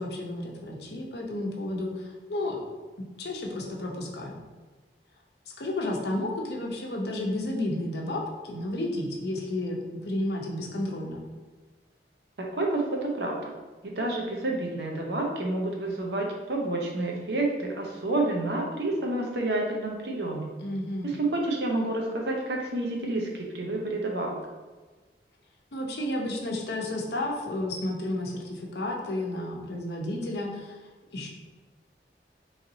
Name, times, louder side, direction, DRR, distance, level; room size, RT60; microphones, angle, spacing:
voice 1, 0.0-2.6 3.2-4.4 5.6-11.2 20.6-21.1 25.7-30.8 31.1-31.3, left 1 dB, 70° left, 0 dB, 0.7 m, -32 dB
voice 2, 12.5-13.5 13.8-20.5 21.0-24.4, right 2 dB, 75° right, 0 dB, 0.7 m, -29 dB
4.0 x 3.2 x 2.7 m, 1.3 s
head